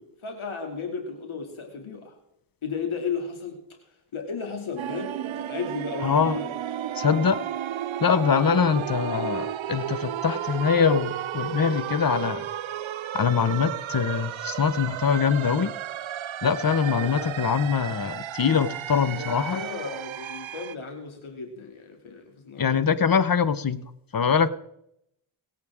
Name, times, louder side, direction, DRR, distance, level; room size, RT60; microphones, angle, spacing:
voice 1, 0.0-2.1 2.6-3.6 4.1-6.5 8.8-8.9 16.9-17.3 19.1-22.9, left 5 dB, 75° left, 2 dB, 2.6 m, -34 dB
sound 1, 4.8-20.8, right 11 dB, 70° right, 0.7 m, -33 dB
voice 2, 6.0-6.4 6.9-7.4 8.0-12.5 13.1-15.7 16.4-19.6 22.6-23.8 24.1-24.5, left 6 dB, 45° left, 14 dB, 1.0 m, -23 dB
22.0 x 8.5 x 3.6 m, 0.78 s
cardioid pair, 60°, 49 cm